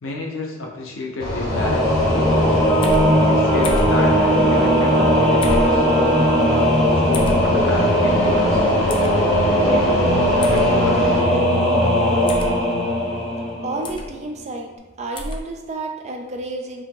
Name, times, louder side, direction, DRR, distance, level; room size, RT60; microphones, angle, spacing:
voice 1, 0.0-2.6 3.2-5.9 6.9-8.6 9.4-11.5, left 2 dB, 80° left, -1 dB, 0.8 m, -31 dB
sound 1, 1.2-11.2, right 2 dB, 50° left, 1.1 m, -25 dB
Singing / Musical instrument, 1.5-14.0, left 1 dB, 5° left, 1.0 m, -18 dB
sound 2, 2.8-3.1 3.6-3.9 5.4-5.7 7.1-7.4 8.9-9.1 10.4-10.7 12.3-12.5 13.8-14.1 15.1-15.4, left 1 dB, 25° left, 0.4 m, -27 dB
voice 2, 13.6-14.7 15.0-16.8, right 2 dB, 35° right, 3 dB, 0.5 m, -30 dB
3.4 x 2.9 x 3.7 m, 1.2 s
head